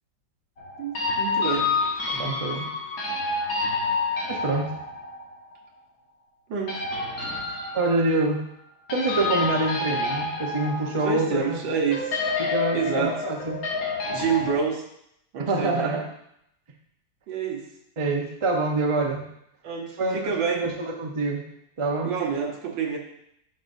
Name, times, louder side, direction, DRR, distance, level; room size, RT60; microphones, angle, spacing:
sound 1, 0.6-5.5 6.7-8.4 8.9-11.6 11.9-14.5, left 3 dB, 55° left, 1.5 m, -29 dB
voice 1, 0.8-1.8 6.5-6.8 10.9-12.2 12.7-13.2 14.0-14.8 15.3-16.1 17.3-17.7 19.6-20.6 22.0-23.0, right 5 dB, 90° right, 1 dB, 1.8 m, -28 dB
voice 2, 2.1-2.7 4.3-4.8 7.7-8.5 8.9-11.6 12.4-13.6 15.5-16.0 18.0-19.3 20.0-20.2 20.5-21.5 21.8-22.1, right 2 dB, 35° right, 1 dB, 0.5 m, -26 dB
10.5 x 5.5 x 2.6 m, 0.77 s
omnidirectional pair, 1.9 m